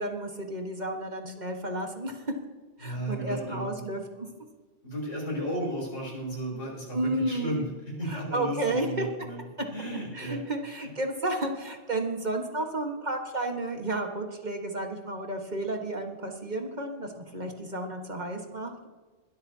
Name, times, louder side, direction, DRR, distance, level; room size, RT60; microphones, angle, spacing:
voice 1, 0.0-2.2 2.8-4.3 6.9-7.6 8.1-9.1 10.1-18.9, right 2 dB, 40° right, 3 dB, 1.6 m, -32 dB
voice 2, 2.8-3.8 4.8-9.4 9.7-10.4 10.8-10.9, equal, 90° left, -2 dB, 6.2 m, -34 dB
21.5 x 13.0 x 2.8 m, 1.3 s
omnidirectional pair, 1.2 m